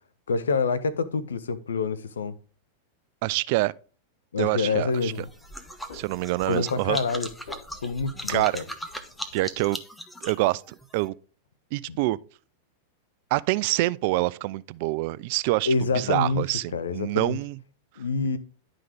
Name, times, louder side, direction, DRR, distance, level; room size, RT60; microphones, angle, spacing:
voice 1, 0.3-2.4 4.3-5.3 6.5-7.3 7.8-8.6 11.9-12.0 15.7-16.4 16.7-17.4 18.0-18.4, left 4 dB, 80° left, 0.7 m, -27 dB
voice 2, 3.2-3.7 4.4-5.1 5.9-7.0 8.3-8.5 9.3-9.8 10.2-11.1 11.7-12.2 13.3-17.6, right 19 dB, 55° right, 0.3 m, -26 dB
sound 1, 4.5-9.6, left 3 dB, 65° left, 1.8 m, -51 dB
sound 2, 4.9-11.1, equal, 5° left, 1.0 m, -39 dB
11.0 x 3.9 x 5.0 m
hypercardioid pair, 100°, 0 cm